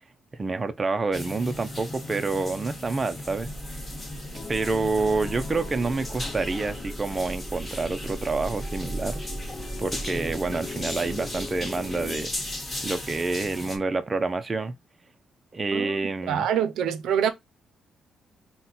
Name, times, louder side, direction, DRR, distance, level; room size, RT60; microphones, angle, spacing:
voice 1, 0.3-3.5 4.5-9.2 9.8-12.6 12.8-14.7 15.5-16.5, right 3 dB, 25° right, 0.5 m, -28 dB
sound 1, 1.1-13.8, left 1 dB, 20° left, 1.4 m, -37 dB
sound 2, 3.2-13.8, right 1 dB, 10° right, 1.3 m, -39 dB
sound 3, 4.3-12.3, left 4 dB, 35° left, 0.6 m, -41 dB
voice 2, 16.3-17.3, right 8 dB, 80° right, 0.5 m, -25 dB
4.1 x 2.2 x 3.9 m
cardioid pair, 90°, 0 cm